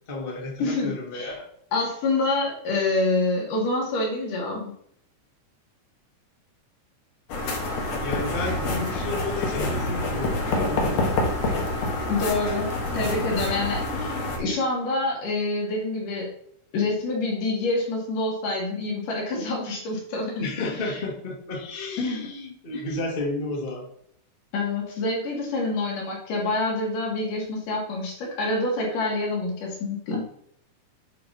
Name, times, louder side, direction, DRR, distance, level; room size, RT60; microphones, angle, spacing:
voice 1, 0.1-1.4 8.0-11.1 20.4-23.9, left 2 dB, 25° left, -1 dB, 1.2 m, -32 dB
voice 2, 0.6-1.3 1.7-4.7 12.1-16.3 16.7-20.5 20.8-21.0 22.0-22.3 22.7-22.8 24.5-30.2, left 2 dB, 75° left, -3 dB, 3.8 m, -27 dB
sound 1, 7.3-14.4, left 2 dB, 60° left, 2.3 m, -27 dB
9.4 x 4.8 x 4.2 m, 0.67 s
omnidirectional pair, 3.8 m